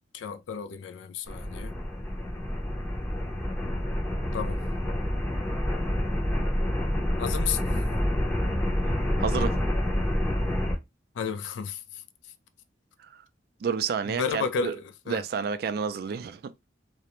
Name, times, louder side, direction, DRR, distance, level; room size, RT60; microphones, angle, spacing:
voice 1, 0.1-1.7 4.3-4.6 7.2-7.7 11.2-12.0 14.1-15.2, left 6 dB, 85° left, 0.3 m, -32 dB
sound 1, 1.3-10.7, left 1 dB, 10° left, 0.6 m, -28 dB
voice 2, 8.9-9.6 13.6-14.7 15.1-16.5, right 6 dB, 55° right, 0.3 m, -30 dB
2.4 x 2.1 x 2.9 m
head